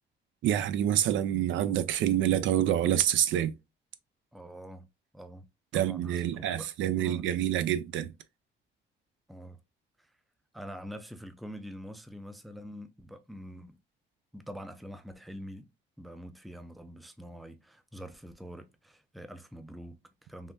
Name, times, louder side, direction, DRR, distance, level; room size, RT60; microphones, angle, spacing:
voice 1, 0.4-3.5 5.7-8.1, right 11 dB, 75° right, 0.4 m, -27 dB
voice 2, 4.3-4.9 5.1-5.4 5.7-6.7 7.0-7.3 9.3-9.6 10.0-10.1 10.5-13.8 14.3-15.7 16.0-20.5, equal, ahead, 0.4 m, -45 dB
3.6 x 2.1 x 2.5 m
cardioid pair, 90°, 20 cm